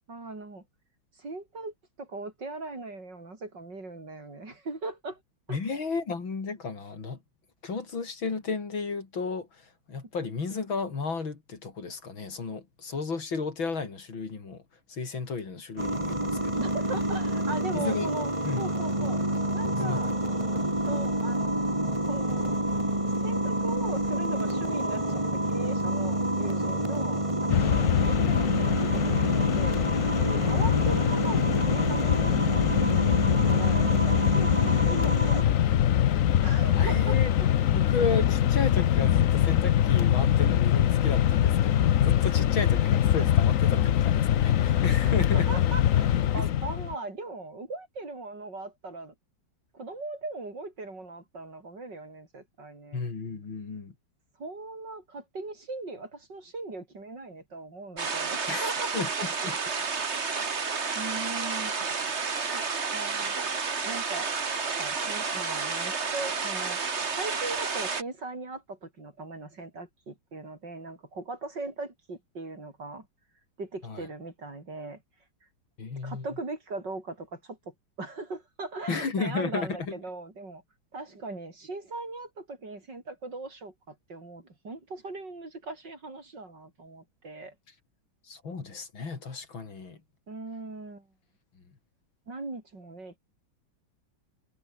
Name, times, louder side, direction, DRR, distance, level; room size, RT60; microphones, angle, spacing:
voice 1, 0.1-0.6 1.2-5.2 5.5-5.6 16.6-18.3 18.6-19.2 19.5-20.1 20.8-21.7 22.1-22.5 23.2-29.8 30.1-35.6 36.1-37.5 45.0-49.1 49.7-53.0 54.4-58.9 59.4-59.5 60.9-61.8 62.5-62.6 62.9-63.4 63.8-66.8 67.1-73.1 73.6-75.0 76.0-80.6 80.9-87.5 90.3-91.1 92.3-93.2, right 3 dB, 60° right, 6.1 m, -39 dB
voice 2, 5.5-7.2 7.6-14.6 14.9-16.6 17.7-18.1 18.4-18.6 19.7-20.4 30.4-30.6 36.7-37.3 37.7-45.5 52.9-53.9 58.5-59.1 59.4-59.5 73.8-74.1 75.8-76.3 78.9-80.0 88.2-90.0 91.5-91.6, left 4 dB, 80° left, 4.3 m, -33 dB
sound 1, 15.8-35.4, right 1 dB, 15° right, 4.3 m, -28 dB
Mechanisms, 27.5-46.9, left 11 dB, 60° left, 0.9 m, -23 dB
sound 2, 58.0-68.0, right 5 dB, 35° right, 1.9 m, -31 dB
omnidirectional pair, 2.1 m